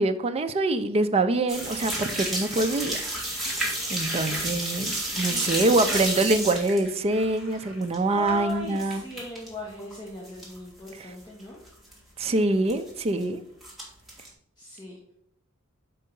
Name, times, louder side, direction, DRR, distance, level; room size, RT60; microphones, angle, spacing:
voice 1, 0.0-3.0 3.6-3.7 3.9-9.0 12.2-13.4, right 2 dB, 30° right, 7 dB, 0.4 m, -25 dB
sound 1, 1.5-9.5 9.8-10.6 10.9-11.0 11.4-11.5 11.7-11.9 12.7-13.2 13.6-14.3, right 1 dB, ahead, 1.9 m, -31 dB
voice 2, 4.1-4.5 5.3-5.9 8.1-11.6 11.8-12.0 14.6-15.0, left 1 dB, 20° left, -3 dB, 1.3 m, -39 dB
5.4 x 4.6 x 5.3 m, 0.74 s
head